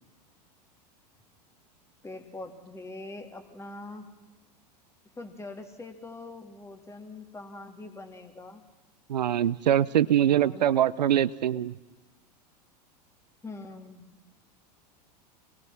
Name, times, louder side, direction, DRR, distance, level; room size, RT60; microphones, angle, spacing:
voice 1, 2.0-4.1 5.2-8.6 10.2-10.7 13.4-14.1, left 2 dB, 15° left, 6 dB, 3.1 m, -43 dB
voice 2, 9.1-11.8, right 11 dB, 80° right, 18 dB, 0.8 m, -23 dB
28.0 x 20.5 x 6.0 m, 1.1 s
hypercardioid pair, 90°, 21 cm